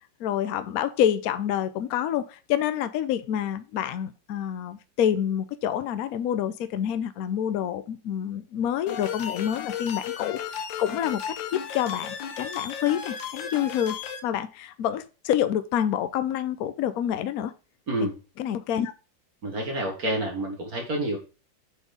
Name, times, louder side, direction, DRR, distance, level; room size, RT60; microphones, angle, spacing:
voice 1, 0.2-17.5 18.4-18.9, left 10 dB, 65° left, 1.0 m, -27 dB
sound 1, 8.9-14.2, left 8 dB, 90° left, 1.6 m, -34 dB
voice 2, 19.4-21.2, right 1 dB, 50° right, 2.2 m, -28 dB
8.1 x 4.2 x 5.0 m
omnidirectional pair, 2.0 m